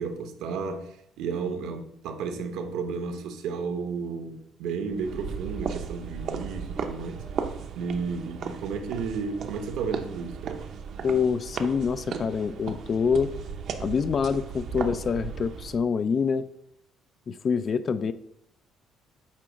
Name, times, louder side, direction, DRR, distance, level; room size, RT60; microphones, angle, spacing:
voice 1, 0.0-7.2 7.7-10.6, right 5 dB, 75° right, 1.0 m, -33 dB
sound 1, 4.9-15.8, right 6 dB, 50° right, 0.7 m, -36 dB
voice 2, 11.0-13.3 13.8-16.4 17.3-18.1, left 6 dB, 35° left, 0.3 m, -26 dB
8.5 x 2.9 x 6.2 m
cardioid pair, 155°, 0 cm